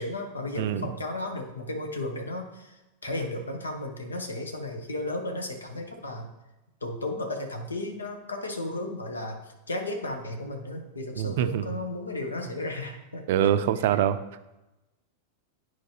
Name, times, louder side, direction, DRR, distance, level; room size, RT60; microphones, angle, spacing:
voice 1, 0.0-6.3 6.8-13.2, left 2 dB, 75° left, 4 dB, 1.0 m, -34 dB
voice 2, 0.6-0.9 11.2-11.6 13.3-14.2, right 10 dB, 55° right, 12 dB, 0.4 m, -24 dB
10.5 x 4.6 x 2.9 m, 1.0 s
figure-of-eight pair, 90°, 0 cm